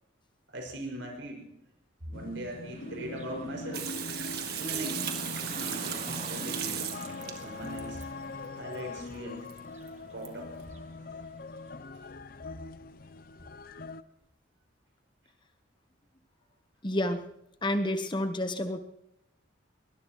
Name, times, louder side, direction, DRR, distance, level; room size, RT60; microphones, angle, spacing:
voice 1, 0.5-1.5 2.1-3.9 4.5-5.0 5.6-6.8 7.1-8.0 8.6-9.5 10.1-10.5 12.8-12.9, right 1 dB, 75° right, 2 dB, 5.9 m, -40 dB
sound 1, 2.1-14.0, left 3 dB, 50° left, 0.6 m, -41 dB
Car passing by / Traffic noise roadway noise, 2.7-11.7, right 3 dB, 35° right, 1.6 m, -48 dB
Water tap faucet / Sink (filling or washing), 3.7-8.0 9.5-9.6 9.9-10.0 10.2-10.3, right 9 dB, 55° right, 1.8 m, -36 dB
voice 2, 16.8-17.2 17.6-18.8, left 1 dB, 25° left, 8 dB, 1.0 m, -29 dB
22.5 x 20.0 x 3.1 m, 0.84 s
head